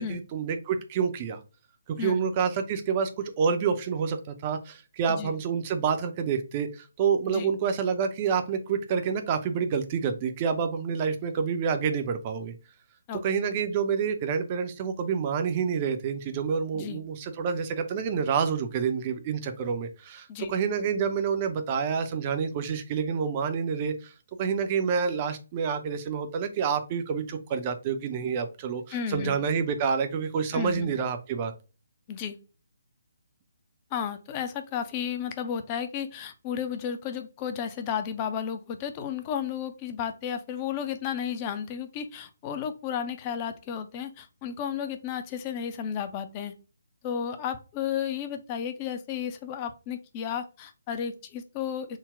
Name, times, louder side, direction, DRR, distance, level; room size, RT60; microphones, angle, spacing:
voice 1, 0.0-1.4 1.9-12.5 13.2-24.1 24.4-31.5, right 6 dB, 30° right, 8 dB, 0.5 m, -28 dB
voice 2, 28.9-29.4 30.5-30.9 32.1-32.4 33.9-46.5 47.0-52.0, left 8 dB, 25° left, 8 dB, 0.4 m, -33 dB
3.8 x 2.1 x 3.5 m, 0.32 s
figure-of-eight pair, 140°, 0 cm